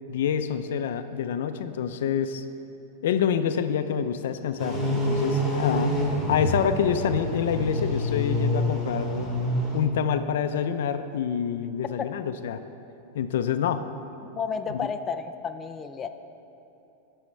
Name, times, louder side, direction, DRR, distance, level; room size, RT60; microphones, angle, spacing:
voice 1, 0.1-2.4 3.0-5.9 6.3-9.3 9.7-12.6 13.1-13.9 14.7-14.8, left 8 dB, 75° left, 10 dB, 0.5 m, -27 dB
sound 1, 4.6-9.8, equal, 5° right, 2.1 m, -27 dB
voice 2, 14.3-16.1, left 6 dB, 20° left, 7 dB, 0.4 m, -32 dB
18.5 x 6.3 x 3.3 m, 2.9 s
supercardioid pair, 135°, 0 cm